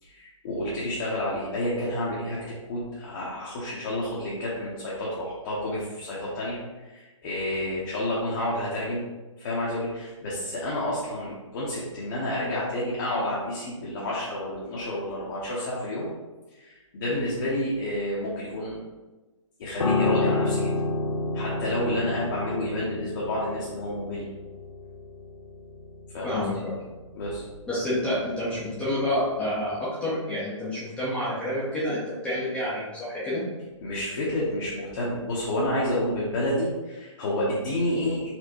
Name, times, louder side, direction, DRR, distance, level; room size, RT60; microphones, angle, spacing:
voice 1, 0.0-9.0 9.4-16.1 16.5-18.8 19.6-20.7 21.3-24.2 26.1-26.6 27.1-27.4 33.8-38.3, left 1 dB, 40° left, -7 dB, 0.8 m, -30 dB
Piano, 19.8-29.2 29.4-29.7, left 3 dB, 80° left, 0.6 m, -30 dB
voice 2, 26.2-26.7 27.7-33.4, left 1 dB, 5° left, -11 dB, 0.6 m, -28 dB
4.2 x 2.1 x 2.9 m, 1.2 s
hypercardioid pair, 150°, 17 cm